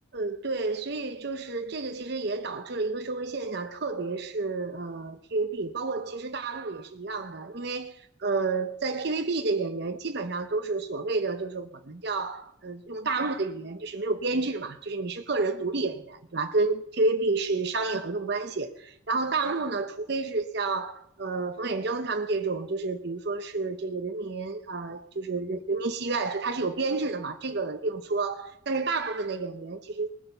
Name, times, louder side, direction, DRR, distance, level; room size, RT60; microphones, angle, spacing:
voice 1, 0.1-30.1, right 3 dB, 55° right, 0.8 m, -30 dB
20.0 x 8.4 x 5.6 m
head